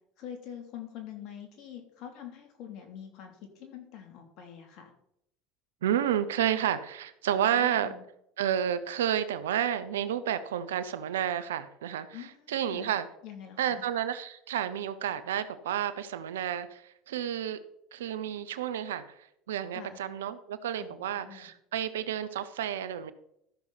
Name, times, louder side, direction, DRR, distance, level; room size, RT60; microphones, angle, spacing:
voice 1, 0.2-4.9 7.5-8.0 12.1-13.8 19.7-20.0 20.8-21.5, left 9 dB, 60° left, 4 dB, 2.8 m, -45 dB
voice 2, 5.8-7.9 8.4-13.1 13.6-17.6 17.9-23.1, right 10 dB, 85° right, 13 dB, 0.8 m, -31 dB
14.0 x 6.6 x 4.1 m, 0.75 s
hypercardioid pair, 80°, 0 cm